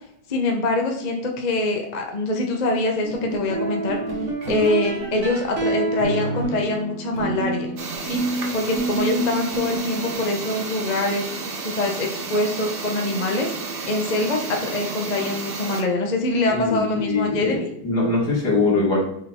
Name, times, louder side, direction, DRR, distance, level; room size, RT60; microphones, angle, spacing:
voice 1, 0.3-4.0 4.5-7.7 8.0-8.2 8.5-11.2 11.6-13.5 13.9-17.7, left 2 dB, 40° left, 1 dB, 0.6 m, -24 dB
sound 1, 3.0-10.1, right 2 dB, 40° right, 1.6 m, -28 dB
sound 2, 7.8-15.8, right 3 dB, 70° right, 0.5 m, -32 dB
voice 2, 16.5-19.0, left 3 dB, 55° left, -4 dB, 2.7 m, -22 dB
6.1 x 3.9 x 4.3 m, 0.71 s
omnidirectional pair, 2.1 m